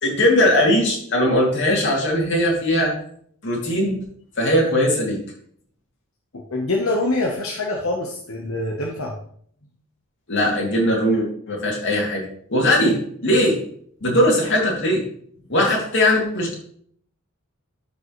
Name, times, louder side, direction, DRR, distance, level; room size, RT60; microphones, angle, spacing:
voice 1, 0.0-2.9 3.4-4.0 4.4-5.2 10.3-12.2 12.5-13.6 14.0-15.0 15.5-16.5, left 1 dB, 60° left, -2 dB, 2.8 m, -19 dB
voice 2, 6.3-9.1, left 2 dB, 80° left, -1 dB, 1.1 m, -25 dB
12.5 x 5.3 x 3.2 m, 0.62 s
head